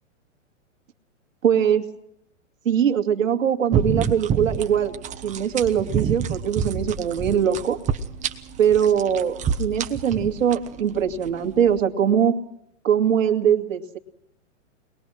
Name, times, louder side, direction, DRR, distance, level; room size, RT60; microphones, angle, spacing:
voice 1, 1.4-1.9 2.7-4.9 5.2-7.8 8.6-12.4 12.8-14.0, right 8 dB, 80° right, 6 dB, 2.4 m, -21 dB
sound 1, 3.7-11.8, right 7 dB, 20° right, 1.2 m, -28 dB
22.5 x 21.0 x 6.3 m, 0.80 s
hypercardioid pair, 125°, 39 cm